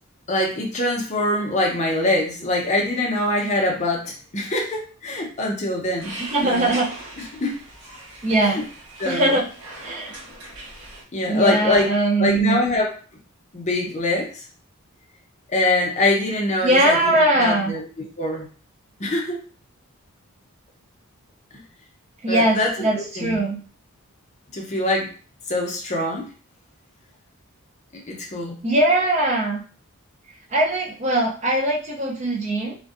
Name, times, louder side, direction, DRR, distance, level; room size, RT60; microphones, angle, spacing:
voice 1, 0.3-6.2 6.4-6.8 7.3-7.5 8.4-8.6 9.0-9.4 11.1-11.9 12.2-12.9 13.5-14.5 15.5-17.8 18.2-18.5 19.0-19.4 22.3-23.4 24.5-25.1 25.5-26.3 27.9-28.6, left 1 dB, 30° left, 0 dB, 0.5 m, -24 dB
sound 1, 6.0-11.0, right 1 dB, 80° right, 1.1 m, -39 dB
voice 2, 6.2-6.9 8.2-8.6 9.0-9.5 9.8-10.1 11.3-12.6 16.6-17.7 22.2-23.6 28.6-29.6 30.5-32.8, right 1 dB, 30° right, -1 dB, 0.4 m, -21 dB
2.5 x 2.2 x 2.4 m, 0.39 s
head